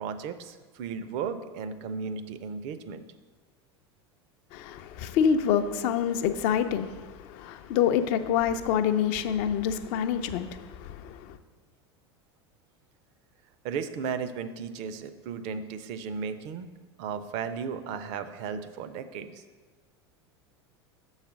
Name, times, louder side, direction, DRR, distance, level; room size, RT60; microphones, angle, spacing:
voice 1, 0.0-3.1 13.6-16.7 17.0-19.4, right 6 dB, 50° right, 0.5 m, -35 dB
voice 2, 4.5-11.4, left 8 dB, 50° left, 0.5 m, -27 dB
7.1 x 4.0 x 6.0 m
figure-of-eight pair, 75°, 14 cm